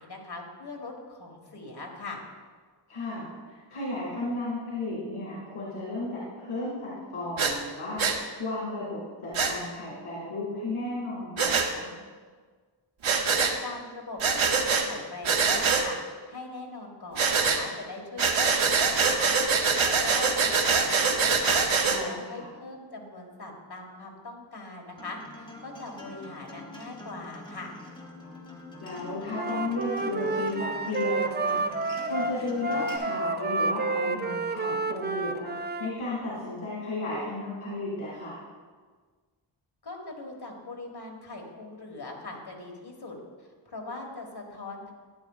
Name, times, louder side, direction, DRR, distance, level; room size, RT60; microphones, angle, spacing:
voice 1, 0.0-2.2 13.4-21.6 22.0-27.7 39.8-43.2 43.6-44.9, left 3 dB, 50° left, 1 dB, 1.7 m, -41 dB
voice 2, 2.9-8.0 8.4-11.9 21.9-22.5 28.8-31.6 32.1-35.5 35.8-38.4, left 2 dB, 80° left, -7 dB, 2.4 m, -34 dB
Breathing, 7.4-7.5 8.0-8.2 9.3-9.5 11.4-11.7 13.0-13.5 14.2-14.8 15.2-15.8 17.2-17.6 18.2-22.0, right 5 dB, 70° right, 0.9 m, -24 dB
Acoustic guitar, 25.0-33.0, left 2 dB, 10° left, 1.6 m, -45 dB
Wind instrument woodwind instrument, 29.3-35.9, right 3 dB, 25° right, 0.3 m, -30 dB
12.0 x 9.8 x 2.4 m, 1.5 s
wide cardioid pair, 95°, 49 cm